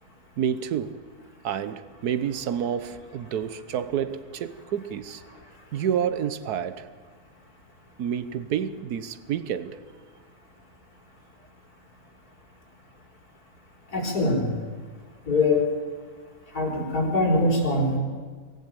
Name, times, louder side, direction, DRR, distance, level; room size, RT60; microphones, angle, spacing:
voice 1, 0.4-1.1 1.4-5.2 5.7-6.9 8.0-9.8, right 8 dB, 85° right, 1.4 m, -29 dB
voice 2, 13.9-14.5 15.3-15.7 16.5-18.0, left 2 dB, 75° left, 4.8 m, -23 dB
24.0 x 15.0 x 9.0 m
omnidirectional pair, 1.6 m